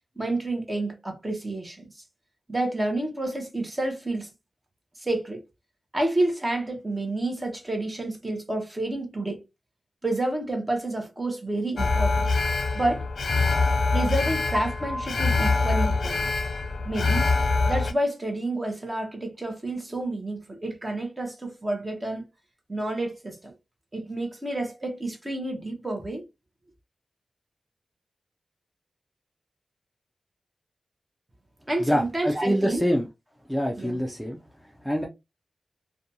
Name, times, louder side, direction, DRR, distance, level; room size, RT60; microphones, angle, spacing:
voice 1, 0.2-1.9 2.5-4.3 5.0-5.4 5.9-9.4 10.0-12.3 12.7-13.0 13.9-16.3 16.8-17.3 17.7-22.2 22.7-23.5 23.9-26.2 31.7-32.8 33.8-34.0, right 2 dB, 20° right, 0.8 m, -29 dB
Alarm, 11.8-17.9, left 3 dB, 70° left, 0.4 m, -24 dB
Piano, 14.5-16.6, left 1 dB, 45° right, 1.2 m, -36 dB
voice 2, 31.8-33.1 33.5-34.4 34.8-35.1, equal, ahead, 0.4 m, -25 dB
2.5 x 2.2 x 2.7 m
wide cardioid pair, 140°, 0 cm